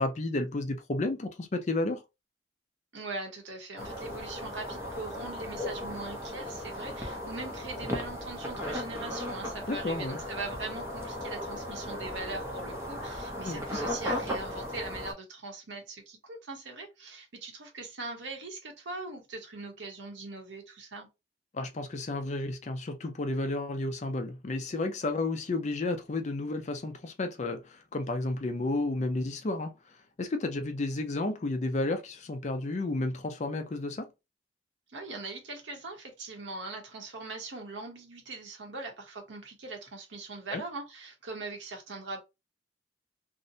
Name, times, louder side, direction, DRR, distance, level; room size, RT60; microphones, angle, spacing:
voice 1, 0.0-2.0 9.7-10.2 13.4-13.6 21.5-29.7 30.2-34.0 40.5-40.6, left 2 dB, 40° left, 0.4 m, -32 dB
voice 2, 2.9-21.1 34.9-42.2, right 3 dB, 80° right, 0.9 m, -41 dB
sound 1, 3.8-15.1, left 1 dB, 15° right, 0.6 m, -36 dB
2.6 x 2.1 x 2.6 m
head